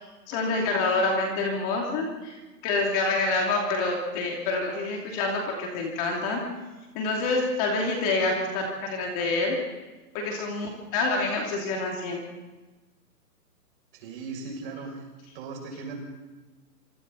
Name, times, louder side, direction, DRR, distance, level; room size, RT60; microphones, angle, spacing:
voice 1, 0.3-2.4 2.6-6.4 6.9-9.6 10.1-12.2, left 3 dB, 20° left, 0 dB, 2.8 m, -27 dB
voice 2, 13.9-15.0 15.3-16.0, right 4 dB, 35° right, 1 dB, 7.0 m, -37 dB
27.0 x 26.0 x 4.1 m, 1.2 s
hypercardioid pair, 160°, 49 cm